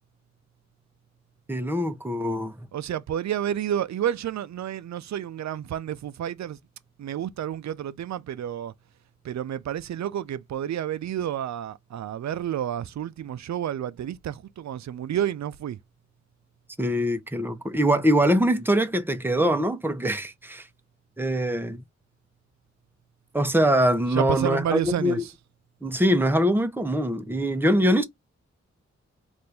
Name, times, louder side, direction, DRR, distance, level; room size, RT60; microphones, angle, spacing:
voice 1, 1.5-2.7 16.8-20.7 21.2-21.8 23.3-25.2 25.8-28.0, equal, 5° right, 0.8 m, -23 dB
voice 2, 2.7-6.6 7.0-8.7 9.2-15.8 24.1-25.3, right 10 dB, 70° right, 0.5 m, -30 dB
4.1 x 2.6 x 3.3 m
cardioid pair, 40°, 30 cm